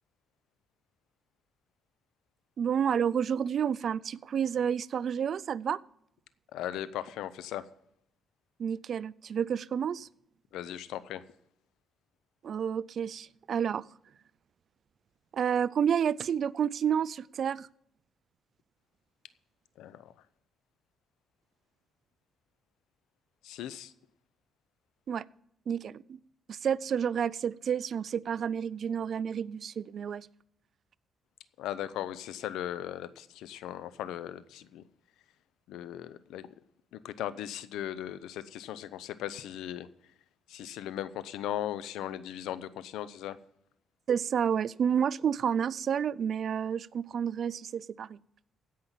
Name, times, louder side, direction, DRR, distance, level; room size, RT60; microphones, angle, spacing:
voice 1, 2.6-5.8 8.6-10.1 12.4-13.9 15.3-17.7 25.1-25.2 25.7-26.2 26.5-30.3 44.1-48.2, right 8 dB, 55° right, 21 dB, 0.4 m, -30 dB
voice 2, 6.5-7.7 10.5-11.2 19.8-20.1 23.4-23.9 31.6-34.8 35.7-36.5 36.9-39.9 40.5-43.4, left 11 dB, 90° left, 16 dB, 0.6 m, -38 dB
16.0 x 5.6 x 7.4 m, 0.74 s
cardioid pair, 90°, 0 cm